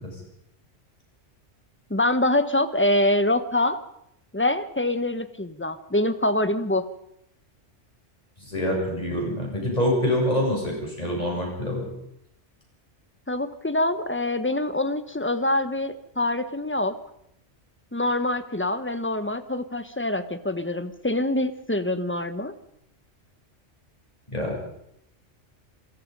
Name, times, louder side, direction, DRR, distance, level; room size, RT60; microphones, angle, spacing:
voice 1, 1.9-3.8 4.3-6.8 13.3-17.0 17.9-22.5, left 1 dB, 10° left, 11 dB, 1.0 m, -25 dB
voice 2, 8.4-11.9 24.3-24.6, left 1 dB, 30° left, -1 dB, 7.8 m, -25 dB
27.5 x 18.0 x 5.4 m, 0.77 s
omnidirectional pair, 1.2 m